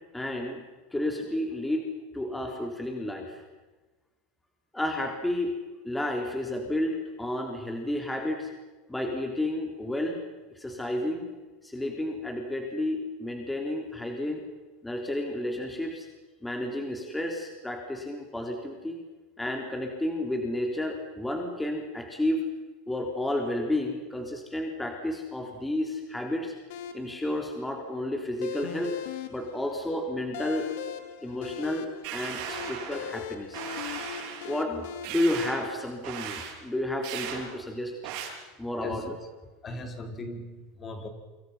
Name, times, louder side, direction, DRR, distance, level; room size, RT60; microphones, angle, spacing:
voice 1, 0.1-0.6 0.9-1.9 2.1-3.4 4.7-5.6 5.8-8.5 8.9-10.2 10.5-11.2 11.6-14.4 14.8-16.1 16.4-19.0 19.4-22.5 22.9-26.5 26.9-28.9 29.3-30.7 31.2-33.6 34.4-38.1 38.6-39.0, left 1 dB, 5° left, 2 dB, 3.6 m, -31 dB
sound 1, 26.7-35.1, left 9 dB, 75° left, 2.3 m, -40 dB
sound 2, 32.0-33.1 33.5-34.5 35.0-35.7 36.0-36.5 37.0-37.4 38.0-38.3, right 8 dB, 65° right, 7.8 m, -37 dB
voice 2, 38.8-39.1 39.6-41.1, left 2 dB, 25° left, 5 dB, 4.5 m, -38 dB
28.0 x 26.5 x 5.8 m, 1.2 s
supercardioid pair, 125°, 0 cm